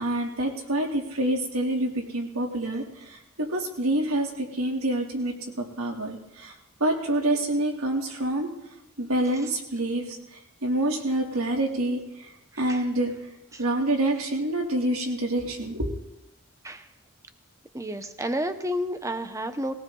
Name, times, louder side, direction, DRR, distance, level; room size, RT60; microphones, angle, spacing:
voice 1, 0.0-6.5 6.8-8.5 9.0-12.3 12.6-13.1 13.6-15.9, right 1 dB, 85° right, 1 dB, 3.0 m, -27 dB
voice 2, 17.7-19.7, equal, 15° right, 9 dB, 1.0 m, -31 dB
20.0 x 18.0 x 3.9 m, 0.90 s
head